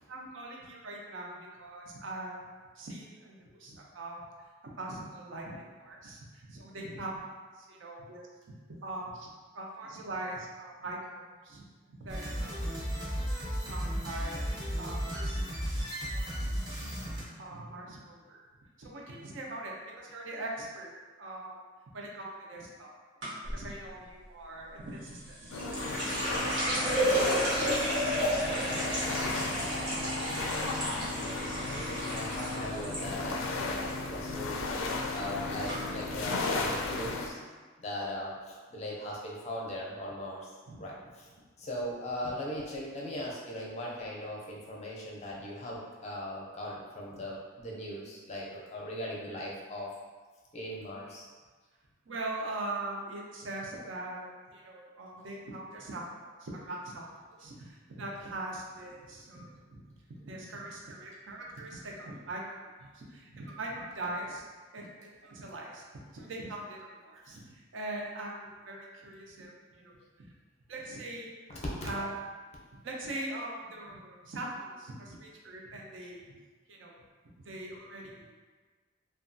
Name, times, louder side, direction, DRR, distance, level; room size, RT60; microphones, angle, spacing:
voice 1, 0.1-2.4 2.8-4.5 4.8-7.2 7.6-8.3 8.8-12.7 13.4-14.4 14.8-15.4 16.1-16.7 17.4-18.4 18.8-20.9 21.2-21.6 21.9-22.9 23.5-25.5 26.2-27.8 28.5-29.5 40.7-40.8 47.1-47.2 52.1-57.0 57.3-59.8 60.2-62.5 62.9-64.5 64.7-65.8 66.1-70.3 70.7-71.4 71.8-72.1 72.8-76.4 76.7-77.0 77.4-78.3, right 2 dB, 70° right, -2 dB, 0.5 m, -42 dB
sound 1, 12.1-17.2, equal, 20° right, 0.6 m, -34 dB
sound 2, 23.2-23.6 25.1-33.0 33.3-33.9 34.2-34.6 35.2-35.3 35.7-35.8, equal, 85° right, 1.0 m, -32 dB
sound 3, 25.5-37.3, left 3 dB, 90° left, 0.4 m, -35 dB
voice 2, 30.8-37.4 37.8-40.4 40.8-41.3 41.6-49.9 50.5-51.3 71.5-71.9, left 1 dB, 35° left, -3 dB, 0.5 m, -39 dB
2.8 x 2.3 x 2.5 m, 1.4 s
head